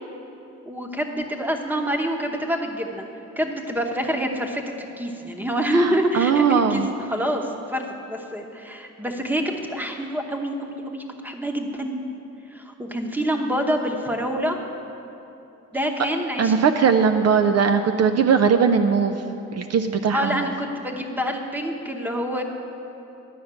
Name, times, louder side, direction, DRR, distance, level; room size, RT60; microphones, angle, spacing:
voice 1, 0.7-3.0 3.4-12.0 12.5-14.6 15.7-16.7 20.1-22.4, equal, 5° right, 3 dB, 1.0 m, -26 dB
voice 2, 5.7-6.9 16.4-19.2 19.5-20.5, right 6 dB, 55° right, 7 dB, 0.5 m, -20 dB
11.0 x 5.7 x 8.8 m, 2.9 s
cardioid pair, 115°, 31 cm